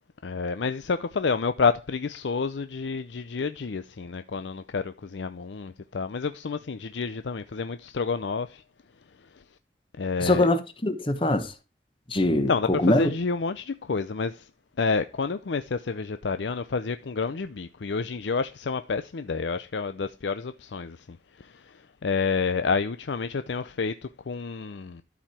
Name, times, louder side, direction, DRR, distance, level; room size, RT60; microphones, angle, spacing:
voice 1, 0.2-8.6 10.0-10.5 12.5-14.5 14.8-25.0, left 4 dB, 80° left, 0.5 m, -29 dB
voice 2, 10.2-11.5 12.1-13.1, left 1 dB, 30° left, 1.1 m, -23 dB
12.5 x 4.9 x 4.3 m
head